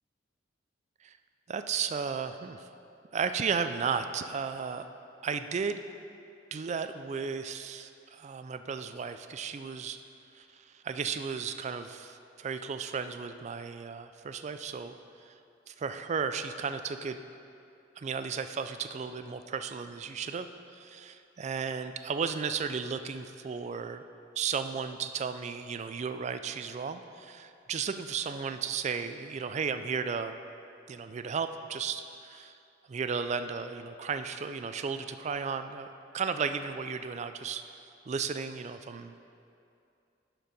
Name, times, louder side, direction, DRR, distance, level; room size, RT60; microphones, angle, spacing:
voice 1, 1.5-2.6 3.1-4.9 5.2-5.8 6.5-10.0 10.3-14.9 15.2-15.3 15.7-17.2 18.0-20.5 20.7-24.0 24.4-30.4 30.9-32.5 32.9-35.9 36.1-37.6 38.1-39.3, right 6 dB, 35° right, 9 dB, 0.3 m, -34 dB
11.5 x 4.5 x 5.3 m, 2.6 s
head